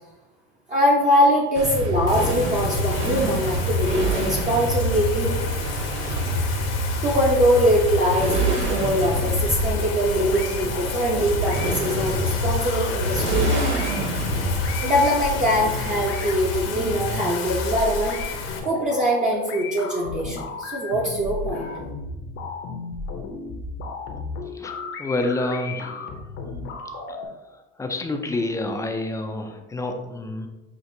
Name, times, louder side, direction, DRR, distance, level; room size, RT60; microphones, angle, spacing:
voice 1, 0.7-5.6 7.0-13.6 14.8-18.2 18.6-21.7, equal, 25° right, -3 dB, 0.6 m, -22 dB
Motorcycle, 1.5-17.3, right 1 dB, 45° right, 1.1 m, -26 dB
Bathtub (filling or washing), 2.1-18.6, left 5 dB, 65° left, 0.9 m, -33 dB
sound 1, 8.6-27.3, left 3 dB, 45° left, 0.7 m, -34 dB
voice 2, 25.0-26.1 27.8-30.5, left 2 dB, 10° left, 5 dB, 0.4 m, -28 dB
5.9 x 2.4 x 2.7 m, 1.1 s
supercardioid pair, 110°, 29 cm